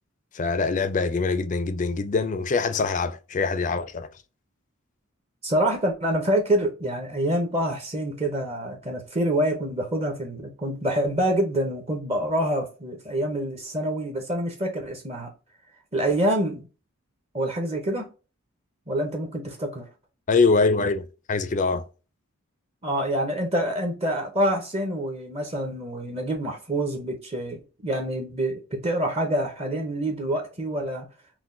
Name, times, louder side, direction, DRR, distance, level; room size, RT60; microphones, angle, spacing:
voice 1, 0.3-4.1 20.3-21.9, left 4 dB, 35° left, 0.4 m, -24 dB
voice 2, 5.4-15.3 15.9-16.7 17.3-18.1 18.9-19.9 22.8-31.1, right 1 dB, 30° right, 0.7 m, -26 dB
5.8 x 2.2 x 2.5 m
head